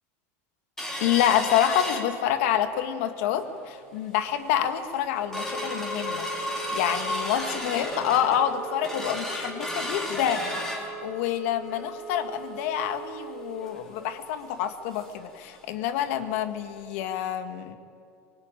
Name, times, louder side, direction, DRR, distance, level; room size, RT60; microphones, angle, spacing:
sound 1, 0.8-2.6 3.0-3.1 3.5-3.8 4.3-4.4 4.8-15.3 15.6-15.7 16.1-16.3 16.8-16.9, equal, 5° left, 3.7 m, -34 dB
voice 1, 1.0-6.3 6.7-17.8, left 10 dB, 70° left, 8 dB, 1.8 m, -27 dB
24.0 x 19.0 x 9.1 m, 2.4 s
supercardioid pair, 135°, 7 cm